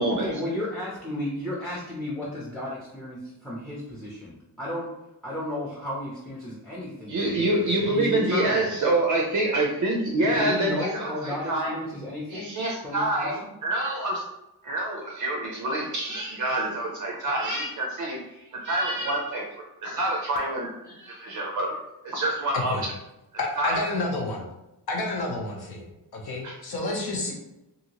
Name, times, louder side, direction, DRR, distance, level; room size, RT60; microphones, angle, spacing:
voice 1, 0.1-4.9 5.2-8.6 10.2-13.5, left 1 dB, ahead, -6 dB, 0.5 m, -33 dB
voice 2, 7.1-11.7 12.3-14.3 14.6-18.2 18.6-19.4 19.8-21.8 22.0-22.9 23.6-23.8 26.4-26.5, right 1 dB, 50° right, 0 dB, 0.4 m, -26 dB
voice 3, 23.4-24.5 24.9-27.3, left 2 dB, 70° left, -1 dB, 0.7 m, -30 dB
2.7 x 2.6 x 2.8 m, 0.92 s
wide cardioid pair, 145°, 40 cm